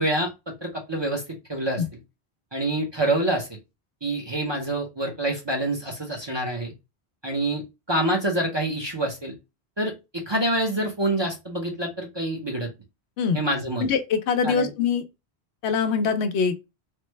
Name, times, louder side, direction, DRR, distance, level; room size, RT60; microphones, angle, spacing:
voice 1, 0.0-1.8 2.5-3.5 4.0-6.7 7.2-7.6 7.9-9.4 9.8-12.7 13.3-13.9 14.4-14.7, right 1 dB, 30° right, 0.6 m, -26 dB
voice 2, 13.8-15.0 15.6-16.7, left 6 dB, 85° left, 0.9 m, -23 dB
3.2 x 2.1 x 3.1 m
omnidirectional pair, 1.1 m